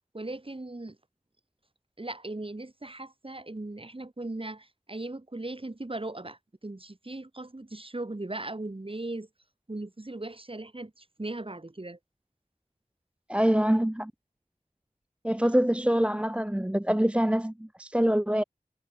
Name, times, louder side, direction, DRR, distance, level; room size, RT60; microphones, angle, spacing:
voice 1, 0.1-1.0 2.0-9.3 9.7-12.0, right 2 dB, 40° right, 6.6 m, -38 dB
voice 2, 13.3-14.1 15.2-18.4, equal, 10° right, 0.8 m, -25 dB
cardioid pair, 40°, 14 cm